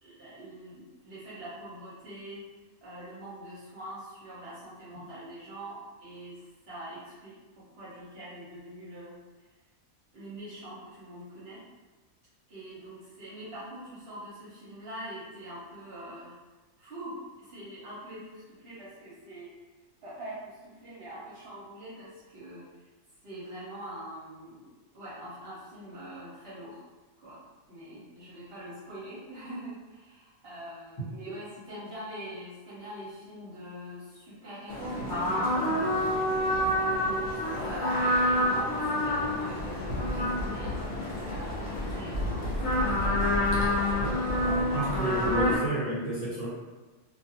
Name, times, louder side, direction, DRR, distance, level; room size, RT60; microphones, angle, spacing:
voice 1, 0.0-2.4 2.8-9.2 10.1-11.6 12.5-16.3 16.8-19.5 20.0-22.6 23.2-26.9 27.2-27.4 27.7-36.5 36.9-42.4, right 1 dB, 55° right, -9 dB, 0.9 m, -44 dB
sound 1, 34.7-45.6, left 1 dB, 60° left, 1.0 m, -28 dB
voice 2, 44.4-46.5, right 1 dB, 45° left, -10 dB, 1.2 m, -31 dB
2.5 x 2.4 x 2.7 m, 1.2 s
omnidirectional pair, 1.4 m